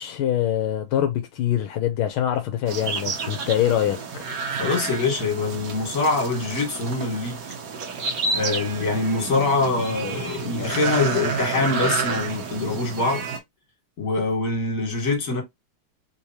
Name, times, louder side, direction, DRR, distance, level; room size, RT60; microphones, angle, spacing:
voice 1, 0.0-4.0, left 11 dB, 80° left, 1.5 m, -24 dB
sound 1, 2.7-13.4, right 4 dB, 60° right, 1.4 m, -30 dB
voice 2, 4.5-7.4 8.3-13.2 14.0-15.4, left 3 dB, 45° left, 1.9 m, -24 dB
3.8 x 3.1 x 2.7 m
omnidirectional pair, 2.3 m